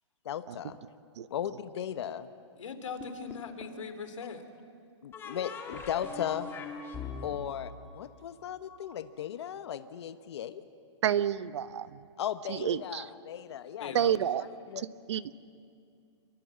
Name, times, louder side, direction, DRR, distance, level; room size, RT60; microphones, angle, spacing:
voice 1, 0.2-0.8 1.3-2.3 5.0-6.5 7.2-10.6 12.2-14.9, left 10 dB, 60° left, 11 dB, 1.1 m, -37 dB
voice 2, 2.6-4.4 13.8-14.1, left 5 dB, 90° left, 9 dB, 3.0 m, -40 dB
sound 1, 3.0-3.8 5.1-8.8, left 5 dB, 15° left, 2.0 m, -42 dB
voice 3, 11.0-12.0 12.5-13.0 13.9-14.4 15.1-15.2, right 10 dB, 65° right, 15 dB, 0.9 m, -29 dB
28.0 x 23.0 x 7.7 m, 2.3 s
hypercardioid pair, 160°, 16 cm